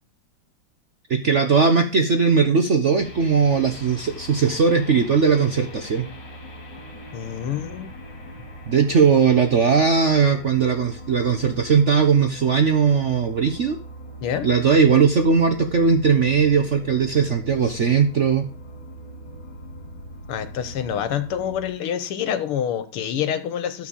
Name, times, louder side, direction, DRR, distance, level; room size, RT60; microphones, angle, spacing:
voice 1, 1.1-6.0 8.7-13.8 14.4-18.4, right 5 dB, 55° right, 6 dB, 0.8 m, -19 dB
sound 1, 3.0-21.7, equal, 55° left, 2.8 m, -40 dB
voice 2, 7.1-7.9 14.2-14.5 20.3-23.9, left 9 dB, 85° left, 11 dB, 2.0 m, -27 dB
12.5 x 4.6 x 7.2 m, 0.36 s
omnidirectional pair, 2.4 m